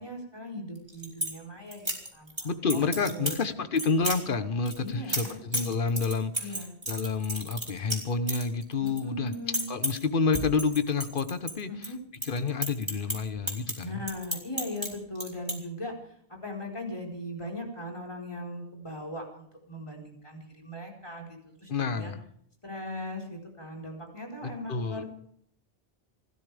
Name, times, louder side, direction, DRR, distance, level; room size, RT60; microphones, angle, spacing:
voice 1, 0.0-3.4 4.8-5.4 6.4-6.7 8.8-9.7 11.7-12.0 13.8-22.1 22.6-25.0, left 1 dB, 30° left, 1 dB, 4.6 m, -39 dB
sound 1, 0.8-1.3 1.7-2.4 2.7-3.4 3.8-4.2 4.7-9.0 9.3-10.0 10.3-11.9 12.1-14.9 15.2-15.5, right 1 dB, 25° right, 3.3 m, -32 dB
voice 2, 2.4-6.5 6.9-9.3 9.7-11.7 12.2-14.0 21.7-22.2 24.4-25.0, left 4 dB, 55° left, 10 dB, 1.3 m, -29 dB
29.0 x 13.0 x 3.5 m, 0.67 s
omnidirectional pair, 1.1 m